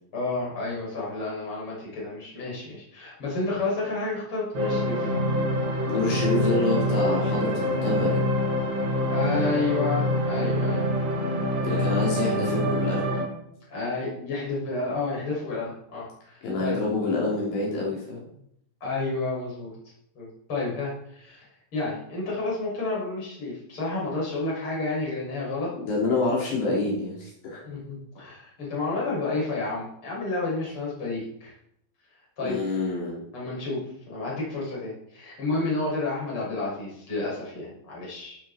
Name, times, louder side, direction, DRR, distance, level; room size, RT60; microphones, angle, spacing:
voice 1, 0.1-5.1 9.1-10.8 13.7-16.8 18.8-19.7 20.2-25.7 27.6-31.5 32.4-32.6 33.3-38.4, left 3 dB, 25° left, -5 dB, 7.0 m, -30 dB
sound 1, 4.5-13.2, equal, 80° right, 8.2 m, -25 dB
voice 2, 5.9-8.2 11.6-13.1 16.4-18.3 25.9-27.6 32.4-33.3, left 3 dB, 65° left, -4 dB, 5.8 m, -27 dB
17.5 x 12.0 x 4.5 m, 0.74 s
omnidirectional pair, 5.5 m